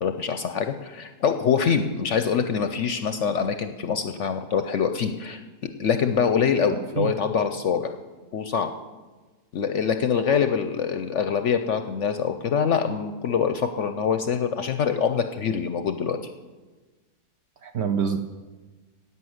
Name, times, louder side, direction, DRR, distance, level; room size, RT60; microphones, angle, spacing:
voice 1, 0.0-7.9 8.3-8.7 9.5-16.2, left 7 dB, 65° left, 8 dB, 0.8 m, -24 dB
voice 2, 6.7-7.1 17.6-18.2, right 7 dB, 60° right, 7 dB, 0.7 m, -26 dB
11.5 x 9.3 x 7.8 m, 1.3 s
omnidirectional pair, 1.7 m